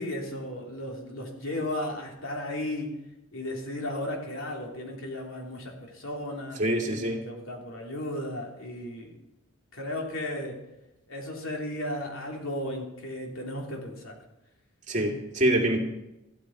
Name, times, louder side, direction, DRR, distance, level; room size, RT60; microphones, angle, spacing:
voice 1, 0.0-2.9 3.3-6.6 7.0-9.1 9.7-10.6 11.1-14.1, left 1 dB, 75° left, -1 dB, 3.3 m, -35 dB
voice 2, 6.6-7.2 14.9-15.8, right 1 dB, 35° right, 1 dB, 2.2 m, -25 dB
14.5 x 13.0 x 4.8 m, 0.92 s
head